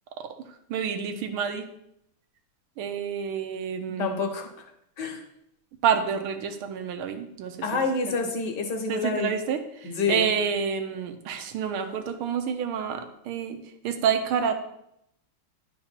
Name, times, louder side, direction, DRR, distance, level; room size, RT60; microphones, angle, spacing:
voice 1, 0.7-1.7 2.8-4.2 5.8-7.8 8.9-13.6 13.8-14.6, right 7 dB, 85° right, 7 dB, 1.6 m, -28 dB
voice 2, 4.0-4.5 5.0-5.2 7.6-9.4 9.8-10.3, left 4 dB, 65° left, 4 dB, 1.2 m, -27 dB
10.0 x 3.9 x 4.4 m, 0.78 s
omnidirectional pair, 2.3 m